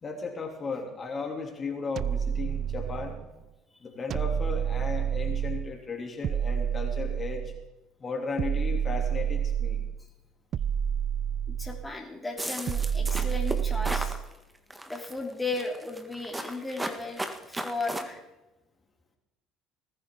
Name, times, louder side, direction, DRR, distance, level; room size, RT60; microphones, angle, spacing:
voice 1, 0.0-3.2 3.8-7.5 8.0-9.8, left 4 dB, 35° left, 1 dB, 3.0 m, -35 dB
sound 1, 2.0-3.3 4.1-5.7 6.2-7.7 8.4-10.0 10.5-11.9 12.7-14.3, right 8 dB, 50° right, 0.4 m, -29 dB
voice 2, 11.5-14.2 14.9-18.2, left 3 dB, 10° left, 0 dB, 3.1 m, -35 dB
sound 2, 12.4-14.2 14.7-15.1 15.5-18.0, right 1 dB, 10° right, 1.7 m, -35 dB
19.0 x 14.5 x 3.8 m, 1.0 s
hypercardioid pair, 65°, 0 cm